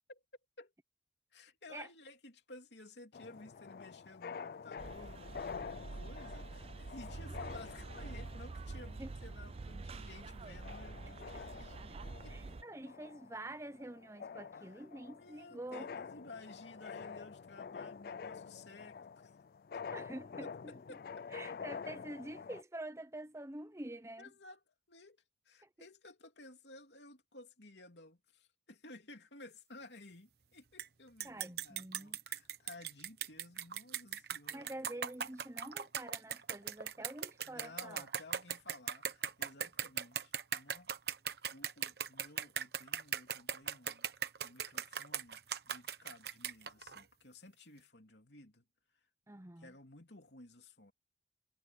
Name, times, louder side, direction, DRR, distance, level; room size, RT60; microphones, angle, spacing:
voice 1, 1.3-11.9 12.2-12.6 14.5-14.8 15.1-19.4 19.7-19.9 20.4-21.0 24.2-24.6 24.9-25.2 25.4-34.8 37.4-40.9 41.5-44.1 44.4-48.6 49.6-50.9, left 2 dB, 70° left, 3.0 m, -55 dB
sound 1, 3.1-22.6, left 6 dB, 50° left, 0.3 m, -48 dB
sound 2, 4.8-12.6, right 3 dB, 30° right, 0.4 m, -47 dB
voice 2, 11.1-11.5 11.9-12.0 12.3-15.9 19.9-20.7 21.3-24.3 25.6-25.7 31.2-32.2 34.5-38.1 49.3-49.7, right 1 dB, 15° right, 0.8 m, -47 dB
sound 3, 30.8-30.9 31.2-47.0, right 9 dB, 60° right, 1.1 m, -39 dB
head